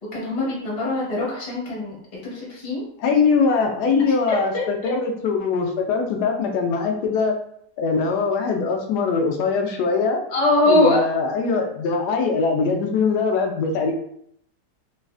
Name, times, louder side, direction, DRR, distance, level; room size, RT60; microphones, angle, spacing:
voice 1, 0.0-2.0 2.2-2.8 4.3-4.9 10.3-11.0, left 1 dB, 35° left, -4 dB, 0.6 m, -22 dB
voice 2, 3.0-7.3 7.8-10.2 10.7-13.9, left 4 dB, 75° left, 3 dB, 1.1 m, -22 dB
3.1 x 2.4 x 2.4 m, 0.70 s
omnidirectional pair, 1.8 m